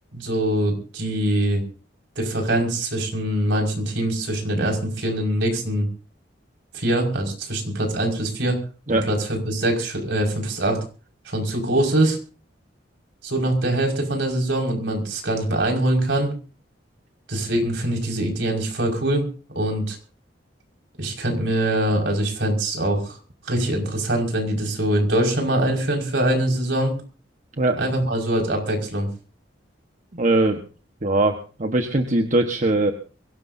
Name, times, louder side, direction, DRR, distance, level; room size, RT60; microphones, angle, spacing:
voice 1, 0.1-1.6 2.2-5.9 6.7-8.6 8.9-10.8 11.3-12.2 13.2-16.3 17.3-19.3 19.5-20.0 21.0-23.2 23.4-27.0 27.8-29.1, right 1 dB, 70° right, 2 dB, 5.6 m, -23 dB
voice 2, 30.1-30.6 31.0-32.9, right 2 dB, 45° right, 4 dB, 1.3 m, -21 dB
23.0 x 17.5 x 2.8 m, 0.38 s
head